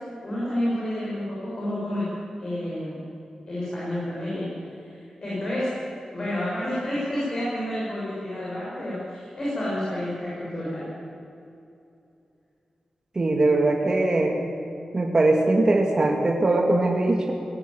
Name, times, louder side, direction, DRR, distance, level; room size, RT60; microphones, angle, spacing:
voice 1, 0.2-2.1 2.4-3.0 3.5-4.5 4.8-5.7 6.1-10.9, left 1 dB, 40° left, -8 dB, 7.3 m, -29 dB
voice 2, 13.2-14.4 14.9-17.3, right 2 dB, 30° right, 1 dB, 1.8 m, -21 dB
19.5 x 16.5 x 9.3 m, 2.7 s
wide cardioid pair, 175°, 2 cm